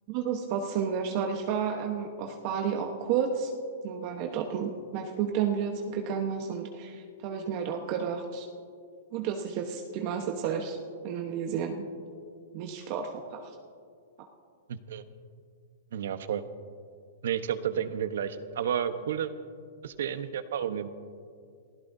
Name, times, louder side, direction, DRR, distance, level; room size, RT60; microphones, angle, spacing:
voice 1, 0.1-3.5 3.8-8.5 9.1-10.8 11.0-11.9 12.5-13.5, right 7 dB, 40° right, 3 dB, 1.1 m, -31 dB
voice 2, 14.7-15.0 15.9-16.4 17.2-19.3 19.8-20.9, right 9 dB, 70° right, 10 dB, 1.0 m, -31 dB
28.5 x 16.0 x 2.7 m, 2.3 s
hypercardioid pair, 145°, 0 cm